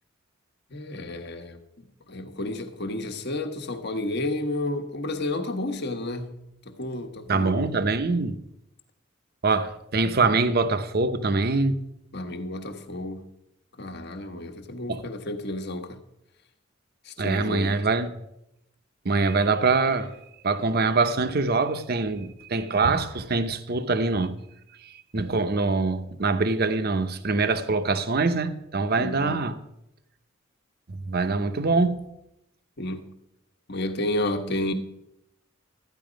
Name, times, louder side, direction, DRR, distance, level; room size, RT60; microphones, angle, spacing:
voice 1, 0.7-7.8 12.1-13.3 13.8-16.0 17.0-17.9 29.0-29.5 32.8-33.2 33.7-34.7, left 1 dB, 55° left, 1.3 m, -31 dB
voice 2, 7.3-8.4 9.4-11.8 14.9-15.0 17.2-18.1 19.0-20.1 20.4-24.4 25.1-29.5 30.9-32.1, right 3 dB, 50° right, 0.8 m, -24 dB
13.0 x 9.8 x 5.1 m
head